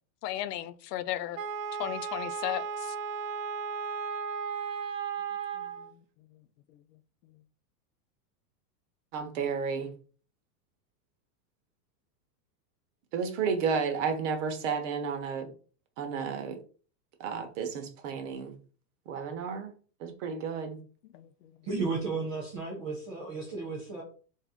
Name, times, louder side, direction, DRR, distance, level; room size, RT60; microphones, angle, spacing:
voice 1, 0.2-1.4 1.8-2.9 5.6-5.7 21.1-21.3, left 13 dB, 80° left, 0.6 m, -35 dB
Wind instrument woodwind instrument, 1.4-5.9, right 6 dB, 80° right, 0.8 m, -35 dB
voice 2, 9.1-9.9 13.1-15.5 16.0-16.6 17.2-18.6 19.1-19.7 20.0-20.8, right 6 dB, 50° right, 1.0 m, -32 dB
voice 3, 21.6-24.0, right 4 dB, 20° right, 0.4 m, -33 dB
3.5 x 2.7 x 3.5 m
supercardioid pair, 160°, 48 cm